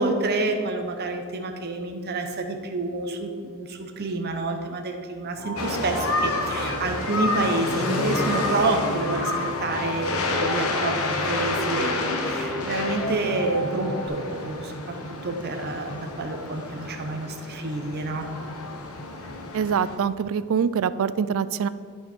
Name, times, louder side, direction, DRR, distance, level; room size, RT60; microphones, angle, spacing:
voice 1, 0.0-9.3 9.6-14.9 15.2-18.3, right 2 dB, 50° right, 5 dB, 0.8 m, -28 dB
sound 1, 5.4-14.1, left 1 dB, 40° left, 1.8 m, -35 dB
sound 2, 5.6-20.0, left 2 dB, 75° left, 1.1 m, -29 dB
voice 2, 19.5-21.7, right 7 dB, 65° right, 15 dB, 0.4 m, -24 dB
12.5 x 5.7 x 4.4 m, 2.1 s
head